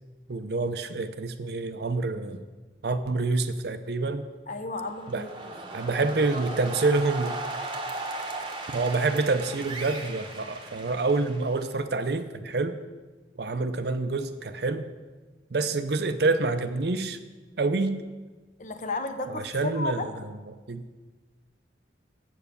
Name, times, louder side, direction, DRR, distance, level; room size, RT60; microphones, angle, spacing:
voice 1, 0.3-2.4 2.8-4.2 5.1-5.2 5.7-7.4 8.7-12.8 13.4-14.9 15.5-17.2 17.6-18.0 19.3-20.0 20.7-20.8, right 3 dB, 60° right, 10 dB, 0.6 m, -27 dB
voice 2, 4.5-5.3 6.0-6.1 18.6-20.1, left 2 dB, 45° left, 8 dB, 0.7 m, -33 dB
sound 1, 4.9-11.7, right 2 dB, 25° right, 0.9 m, -37 dB
8.3 x 6.9 x 6.8 m, 1.3 s
head